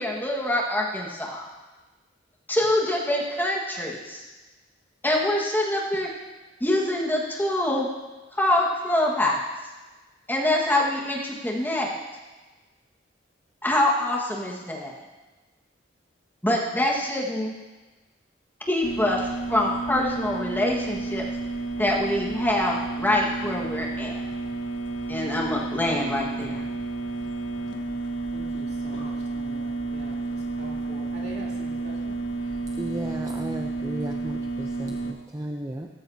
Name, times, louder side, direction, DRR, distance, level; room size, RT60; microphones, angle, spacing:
voice 1, 0.0-1.5 2.5-4.2 5.0-6.1 6.6-7.9 8.3-9.5 10.3-11.9 13.6-14.9 16.4-17.5 18.7-21.2 21.8-24.2 25.1-26.6, left 1 dB, 10° left, -3 dB, 1.7 m, -25 dB
sound 1, 18.8-35.1, right 3 dB, 80° left, 1.4 m, -31 dB
voice 2, 28.3-32.2, right 1 dB, 60° right, -4 dB, 3.3 m, -43 dB
voice 3, 32.8-35.9, right 1 dB, 20° right, 1 dB, 0.7 m, -34 dB
17.0 x 14.0 x 2.8 m, 1.2 s
head